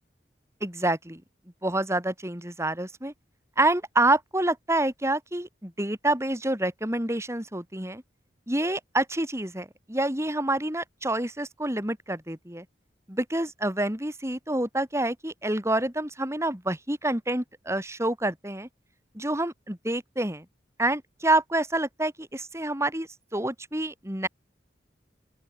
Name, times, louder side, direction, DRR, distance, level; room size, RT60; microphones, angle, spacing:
voice 1, 0.6-1.2 1.6-3.1 3.6-8.0 8.5-12.6 13.1-18.7 19.1-20.4 20.8-24.3, right 1 dB, 15° right, 4.6 m, -27 dB
open air
head